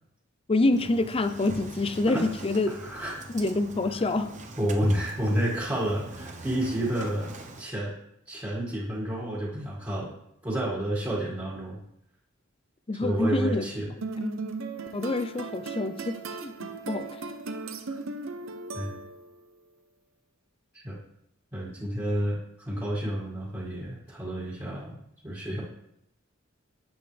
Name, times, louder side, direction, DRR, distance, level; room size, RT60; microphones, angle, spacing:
voice 1, 0.5-2.7 3.3-4.3 12.9-13.6 14.2-14.3 14.9-17.1, left 2 dB, 30° left, 10 dB, 0.5 m, -27 dB
Engine starting, 0.7-7.6, right 2 dB, 35° right, 1.0 m, -43 dB
voice 2, 2.7-3.2 4.0-4.1 4.6-7.9 8.3-10.1 10.4-11.8 13.0-13.9 17.9-18.0 18.7-19.0 20.7-21.0 21.5-25.0 25.2-25.6, right 1 dB, 15° right, -6 dB, 2.1 m, -30 dB
sound 1, 14.0-19.4, right 3 dB, 75° right, 0.8 m, -37 dB
10.0 x 8.0 x 3.4 m, 0.80 s
head